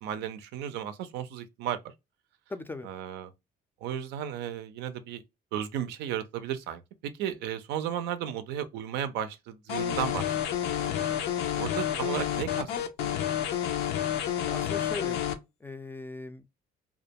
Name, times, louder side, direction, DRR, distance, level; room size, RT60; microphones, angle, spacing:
voice 1, 0.0-1.8 2.8-3.3 3.8-5.2 5.5-6.8 7.2-10.3 10.8-11.2 11.6-12.7 13.0-13.1, right 9 dB, 90° right, 0.4 m, -34 dB
voice 2, 2.5-2.9 11.9-12.0 14.5-15.2 15.6-16.5, left 3 dB, 10° left, 0.3 m, -39 dB
sound 1, 9.7-15.3, left 10 dB, 90° left, 0.5 m, -29 dB
2.3 x 2.2 x 2.7 m
cardioid pair, 110°, 17 cm